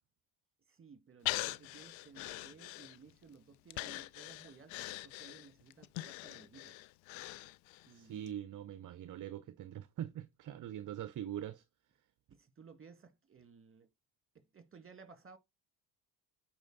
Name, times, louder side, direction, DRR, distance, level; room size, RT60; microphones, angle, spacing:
voice 1, 0.7-6.8 7.9-8.4 12.3-13.9 14.3-15.4, right 5 dB, 25° right, 1.8 m, -58 dB
Breathing, 1.3-3.2 3.7-7.9 8.3-8.4, left 18 dB, 75° left, 0.6 m, -42 dB
voice 2, 7.9-11.6, right 11 dB, 40° right, 0.6 m, -43 dB
9.0 x 4.6 x 3.8 m
hypercardioid pair, 55°, 47 cm